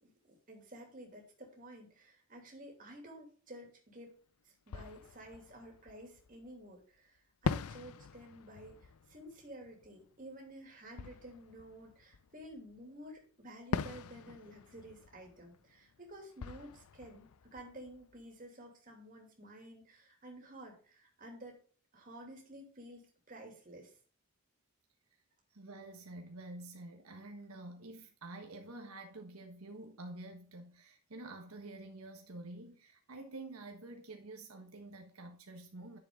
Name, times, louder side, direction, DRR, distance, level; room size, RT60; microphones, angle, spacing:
voice 1, 0.0-4.1 4.4-21.6 21.9-24.0, right 1 dB, 35° right, 2.9 m, -52 dB
Fireworks, 4.1-4.2 4.7-6.6 7.4-12.8 13.7-18.5, left 5 dB, 85° left, 0.5 m, -43 dB
voice 2, 25.5-36.0, right 2 dB, 80° right, 1.4 m, -48 dB
10.0 x 7.0 x 3.7 m
head